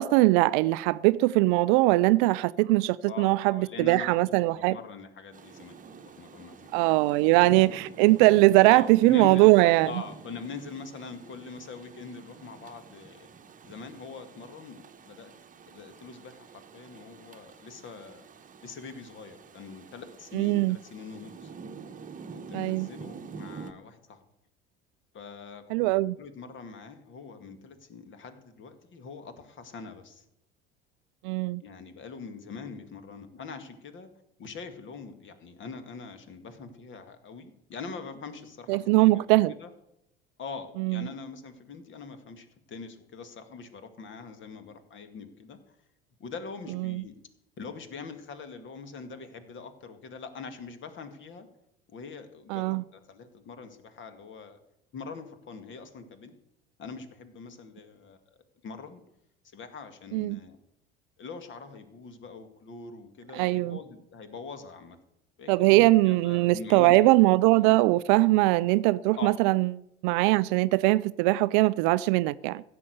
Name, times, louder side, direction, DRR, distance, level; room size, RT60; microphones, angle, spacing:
voice 1, 0.0-4.8 6.7-9.9 20.3-20.8 22.5-22.9 25.7-26.2 31.2-31.6 38.7-39.5 40.8-41.0 46.8-47.0 52.5-52.8 60.1-60.4 63.3-63.8 65.5-69.7 70.0-72.6, right 19 dB, 55° right, 0.5 m, -21 dB
voice 2, 3.1-4.2 4.5-6.7 7.8-8.0 8.7-9.4 9.8-13.3 13.6-15.3 15.7-18.2 18.6-21.5 22.3-24.3 25.1-25.6 26.2-30.2 31.6-34.1 34.4-39.2 39.6-39.7 40.4-45.6 46.2-47.1 47.6-51.5 51.9-54.6 54.9-56.4 56.8-58.2 58.6-59.0 59.5-60.6 61.2-65.0 65.4-67.0 69.2-69.4, left 5 dB, 40° left, 2.1 m, -43 dB
Rain, 5.3-23.7, right 5 dB, 25° right, 1.2 m, -47 dB
16.0 x 6.9 x 8.1 m
figure-of-eight pair, 65°, 29 cm